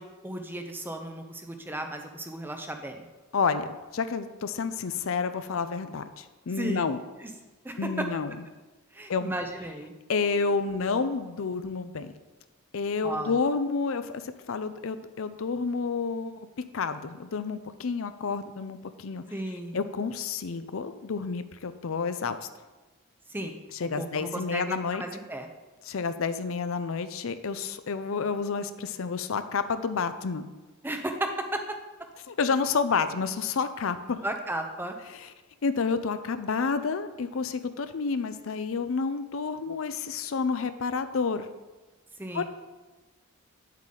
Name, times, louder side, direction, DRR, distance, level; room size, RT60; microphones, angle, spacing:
voice 1, 0.0-3.1 6.6-6.8 7.2-7.3 7.6-8.1 8.9-9.9 13.0-13.4 19.3-19.8 23.3-23.6 24.0-25.5 30.8-31.6 34.2-35.0 42.2-42.4, right 1 dB, 10° right, 5 dB, 0.7 m, -34 dB
voice 2, 3.3-7.0 7.8-8.3 9.1-9.3 10.1-12.1 12.7-16.5 16.7-19.2 19.7-22.5 23.8-25.0 25.9-30.5 32.3-34.2 35.1-35.3 35.6-41.5 42.3-42.4, left 5 dB, 65° left, 11 dB, 0.5 m, -29 dB
9.0 x 7.4 x 3.9 m, 1.2 s
head